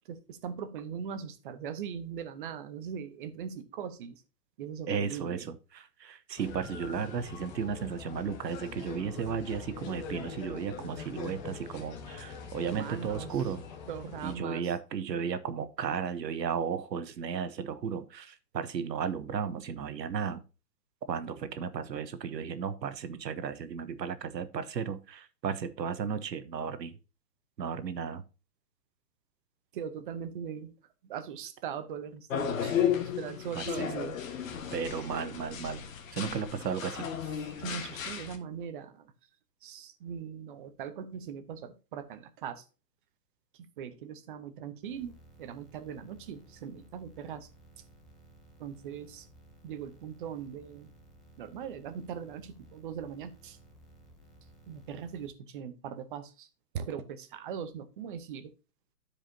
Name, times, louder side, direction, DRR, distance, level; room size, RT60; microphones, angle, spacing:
voice 1, 0.1-4.2 4.6-5.5 12.7-13.3 13.9-14.6 29.7-30.7 31.0-32.8 33.2-34.2 37.6-39.1 39.6-42.6 43.5-47.5 48.6-49.3 49.6-50.9 51.4-53.6 54.7-56.5 56.7-58.5, right 8 dB, 30° right, 11 dB, 0.8 m, -40 dB
voice 2, 4.9-13.6 14.2-20.4 21.1-26.9 27.6-28.2 33.5-33.9 34.7-35.8 36.1-37.1, right 7 dB, 85° right, 12 dB, 1.1 m, -34 dB
sound 1, 6.4-14.4, left 5 dB, 25° left, 0.9 m, -43 dB
sound 2, 32.3-38.4, left 8 dB, 50° left, 1.5 m, -34 dB
sound 3, 44.8-55.3, right 2 dB, ahead, 0.6 m, -57 dB
12.5 x 5.0 x 2.7 m, 0.31 s
hypercardioid pair, 150°, 49 cm